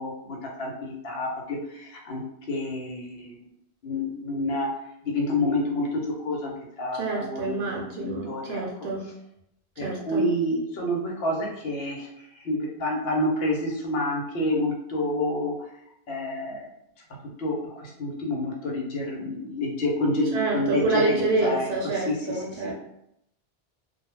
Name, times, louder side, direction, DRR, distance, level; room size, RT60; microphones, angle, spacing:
voice 1, 0.0-2.2 2.5-3.4 3.8-4.7 5.0-8.6 9.8-15.5 16.1-16.7 17.4-21.7 21.9-22.7, left 1 dB, 70° left, -1 dB, 0.9 m, -28 dB
voice 2, 6.9-9.0 9.8-10.2 20.3-22.7, right 3 dB, 75° right, -2 dB, 0.8 m, -27 dB
2.2 x 2.1 x 3.0 m, 0.78 s
omnidirectional pair, 1.1 m